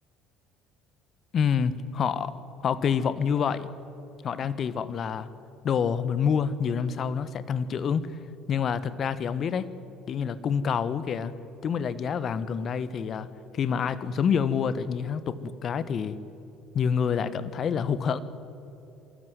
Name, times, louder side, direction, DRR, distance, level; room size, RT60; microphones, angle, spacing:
voice 1, 1.3-2.3 2.6-3.7 4.2-5.3 5.6-8.1 8.5-9.7 10.1-11.3 11.6-13.3 13.5-16.2 16.7-18.2, left 7 dB, 45° left, 15 dB, 1.2 m, -27 dB
24.0 x 14.0 x 9.3 m, 2.9 s
hypercardioid pair, 60°, 0 cm